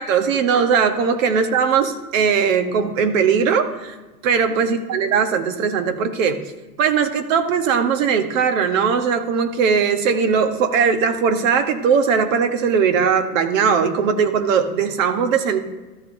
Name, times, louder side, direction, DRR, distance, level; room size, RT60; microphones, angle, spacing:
voice 1, 0.0-4.0 4.2-6.4 6.8-15.6, right 6 dB, 55° right, 8 dB, 1.2 m, -19 dB
13.5 x 8.4 x 2.7 m, 1.2 s
supercardioid pair, 145°, 46 cm